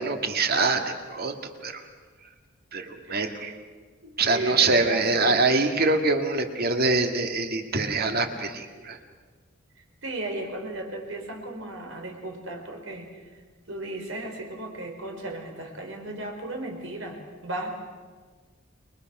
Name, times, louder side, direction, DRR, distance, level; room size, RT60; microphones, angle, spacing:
voice 1, 0.0-1.4 1.6-1.8 2.7-3.5 4.2-9.0, right 3 dB, 50° right, 6 dB, 2.0 m, -24 dB
voice 2, 4.0-5.4 10.0-13.1 13.7-17.8, right 2 dB, 80° right, 3 dB, 4.4 m, -35 dB
29.5 x 22.5 x 6.1 m, 1.4 s
head